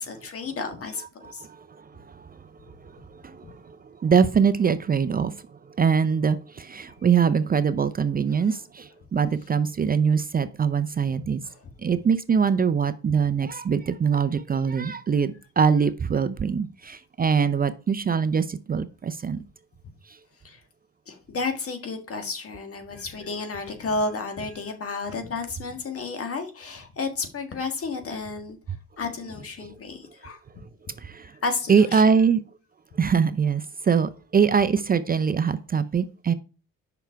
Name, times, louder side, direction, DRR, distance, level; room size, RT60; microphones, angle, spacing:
voice 1, 0.0-1.5 3.4-3.5 8.3-8.4 11.5-11.6 20.4-20.6 21.1-28.6 29.0-30.4 31.4-32.1, left 4 dB, 50° left, 1.7 m, -32 dB
voice 2, 1.2-11.4 11.8-19.4 20.1-20.2 29.6-29.8 31.0-31.4 31.7-32.4 32.9-36.3, right 6 dB, 30° right, 0.5 m, -23 dB
6.9 x 5.8 x 4.6 m
cardioid pair, 90°, 30 cm